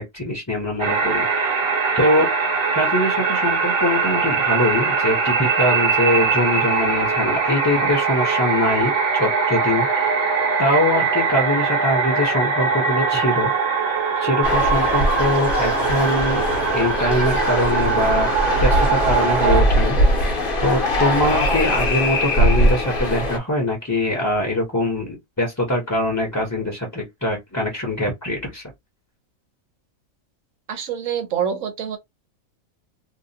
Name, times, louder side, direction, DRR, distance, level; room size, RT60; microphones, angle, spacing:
voice 1, 0.0-1.6 1.9-2.3 2.7-10.2 10.6-13.5 13.9-16.4 16.7-18.3 18.6-28.6, left 1 dB, 15° left, 0.7 m, -23 dB
sound 1, 0.8-19.6, right 5 dB, 55° right, 1.0 m, -21 dB
sound 2, 14.4-23.4, equal, 45° left, 0.9 m, -21 dB
voice 2, 30.7-32.0, right 8 dB, 70° right, 1.1 m, -26 dB
2.7 x 2.3 x 2.7 m
omnidirectional pair, 1.4 m